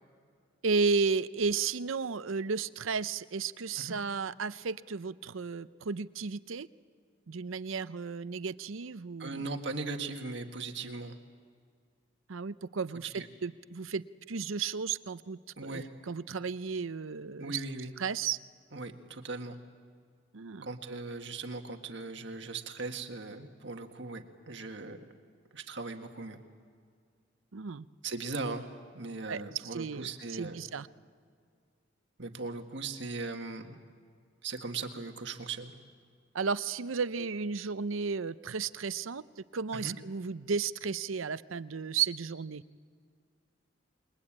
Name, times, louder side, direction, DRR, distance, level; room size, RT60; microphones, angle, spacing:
voice 1, 0.6-6.7 7.3-9.5 12.3-17.6 18.0-18.4 20.3-20.7 27.5-27.9 29.3-29.4 29.7-30.9 36.3-42.6, right 5 dB, 90° right, 15 dB, 0.7 m, -33 dB
voice 2, 9.2-11.2 13.1-13.3 15.6-15.9 17.4-17.9 18.7-19.6 20.6-25.0 25.5-26.4 28.0-28.7 28.9-30.6 32.2-33.8 34.4-35.7 39.7-40.0, right 3 dB, 60° right, 5 dB, 1.7 m, -39 dB
28.0 x 21.5 x 8.7 m, 2.1 s
head